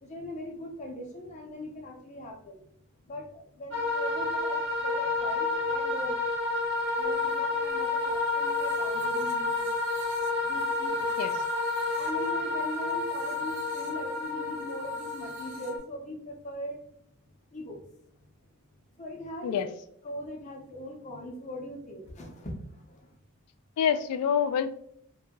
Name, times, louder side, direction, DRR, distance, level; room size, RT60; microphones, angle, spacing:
voice 1, 0.0-2.6 3.1-4.6 4.8-6.2 7.0-9.7 10.4-11.1 11.9-16.8 17.5-17.8 19.0-19.7 20.0-22.6, equal, 30° left, 1 dB, 0.5 m, -40 dB
sound 1, 3.7-15.8, left 3 dB, 55° right, 0.8 m, -30 dB
voice 2, 23.8-24.7, left 8 dB, 90° left, 11 dB, 0.3 m, -26 dB
2.6 x 2.2 x 2.8 m, 0.68 s
head